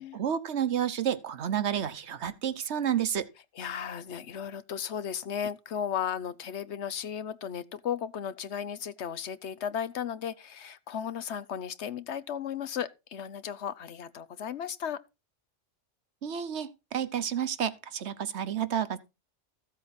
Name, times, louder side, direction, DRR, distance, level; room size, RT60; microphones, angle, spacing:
voice 1, 0.0-3.3 16.2-19.0, right 9 dB, 65° right, 1.2 m, -30 dB
voice 2, 3.6-15.0, left 8 dB, 70° left, 1.0 m, -35 dB
14.5 x 8.0 x 4.1 m
omnidirectional pair, 1.2 m